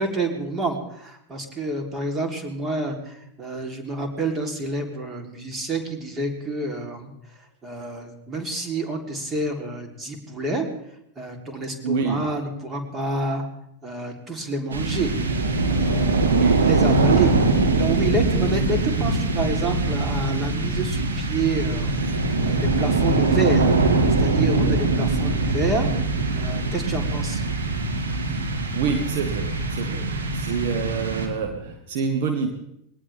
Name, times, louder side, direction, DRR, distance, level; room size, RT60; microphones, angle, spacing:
voice 1, 0.0-7.1 7.6-10.7 11.2-13.4 13.8-15.1 15.7-17.4 17.8-23.7 24.2-25.9 26.4-27.4, right 2 dB, 20° right, 3 dB, 3.6 m, -28 dB
voice 2, 11.8-12.3 16.2-16.7 28.7-32.5, right 5 dB, 55° right, 4 dB, 1.7 m, -26 dB
sound 1, 14.7-31.6, right 3 dB, 70° right, 2.9 m, -22 dB
22.0 x 18.5 x 3.6 m, 0.77 s
figure-of-eight pair, 85°, 0 cm